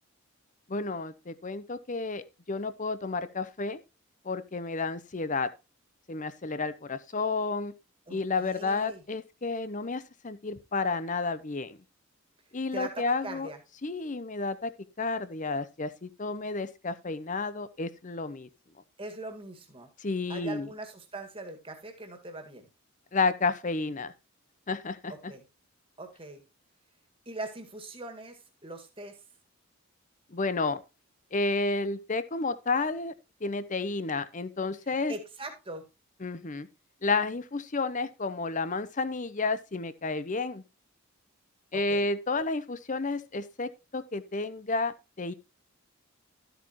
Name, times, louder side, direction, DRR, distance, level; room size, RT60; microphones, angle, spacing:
voice 1, 0.7-3.8 4.2-5.5 6.1-7.7 8.1-11.8 12.5-13.5 13.8-14.7 15.0-18.5 20.0-20.7 23.1-24.1 24.7-25.3 30.3-30.8 31.3-33.1 33.4-35.1 36.2-36.7 37.0-40.6 41.7-45.3, left 3 dB, 35° left, 0.7 m, -31 dB
voice 2, 8.1-9.0 12.7-13.6 19.0-19.9 20.3-22.7 25.1-25.4 26.0-26.4 27.3-29.2 35.1-35.9 41.7-42.1, right 2 dB, 25° right, 1.9 m, -41 dB
12.5 x 8.0 x 3.0 m
head